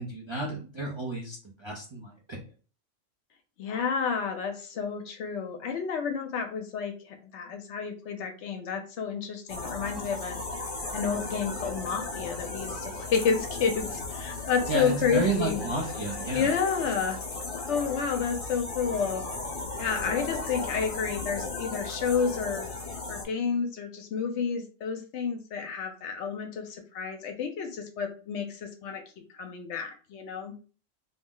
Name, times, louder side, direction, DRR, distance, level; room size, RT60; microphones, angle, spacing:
voice 1, 0.0-2.4 14.7-16.5, right 3 dB, 40° right, -2 dB, 0.4 m, -32 dB
voice 2, 3.6-10.4 10.9-15.6 16.3-17.2 17.6-19.2 19.8-22.7 23.1-29.0 29.3-30.5, left 6 dB, 70° left, 5 dB, 0.8 m, -30 dB
sound 1, 9.5-23.2, left 3 dB, 45° left, 1.0 m, -36 dB
2.6 x 2.0 x 3.6 m, 0.37 s
omnidirectional pair, 1.3 m